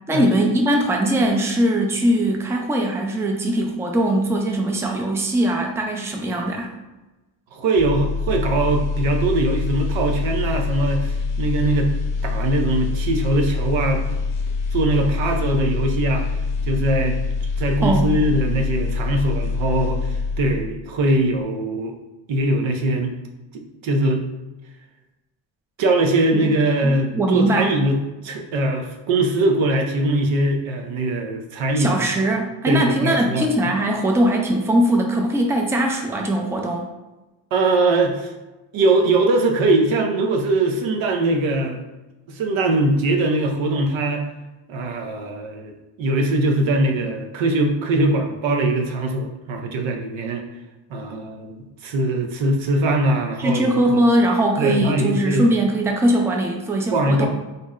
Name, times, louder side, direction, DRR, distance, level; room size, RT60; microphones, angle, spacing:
voice 1, 0.1-6.7 17.8-18.1 26.3-26.5 26.8-27.8 31.8-36.9 53.4-57.3, right 1 dB, 5° right, 2 dB, 0.4 m, -20 dB
voice 2, 7.5-11.9 12.2-14.0 14.7-16.3 16.7-17.2 17.6-21.9 22.3-23.1 23.5-24.2 25.8-32.3 32.7-33.8 37.5-38.3 38.7-41.8 42.3-44.2 44.7-45.7 46.0-50.4 50.9-51.6 51.8-53.8 54.6-55.4 56.9-57.3, right 2 dB, 85° right, 3 dB, 0.7 m, -21 dB
sound 1, 7.8-20.9 21.2-21.4, left 4 dB, 45° left, 0.6 m, -25 dB
4.0 x 2.1 x 3.6 m, 1.1 s
cardioid pair, 110°, 45 cm